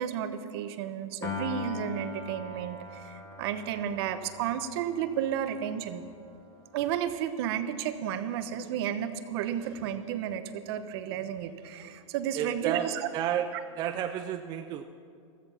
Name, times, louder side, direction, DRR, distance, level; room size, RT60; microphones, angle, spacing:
voice 1, 0.0-6.1 6.7-13.1 13.5-13.6, right 9 dB, 50° right, 10 dB, 1.1 m, -32 dB
Piano, 1.2-7.6, left 3 dB, 20° left, 1.5 m, -41 dB
voice 2, 12.3-13.5 13.8-14.8, right 10 dB, 25° right, 7 dB, 0.5 m, -31 dB
15.5 x 14.0 x 5.9 m, 2.4 s
supercardioid pair, 150°, 17 cm